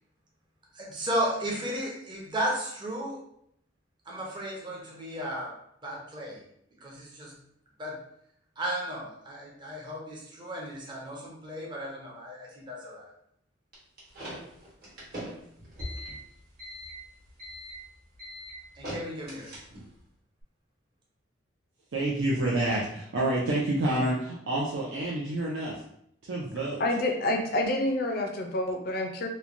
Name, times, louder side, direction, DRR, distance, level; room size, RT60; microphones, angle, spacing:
voice 1, 0.7-3.2 4.1-5.5 5.8-6.4 6.8-7.3 7.8-8.0 8.6-13.1 18.8-19.5, equal, 25° right, -3 dB, 0.6 m, -34 dB
sound 1, 13.7-20.0, equal, 50° right, 1.0 m, -41 dB
voice 2, 21.9-25.8 26.2-26.8, right 1 dB, 70° right, -5 dB, 0.5 m, -28 dB
voice 3, 26.8-29.3, left 1 dB, 50° left, 3 dB, 0.4 m, -28 dB
3.0 x 2.1 x 2.5 m, 0.72 s
head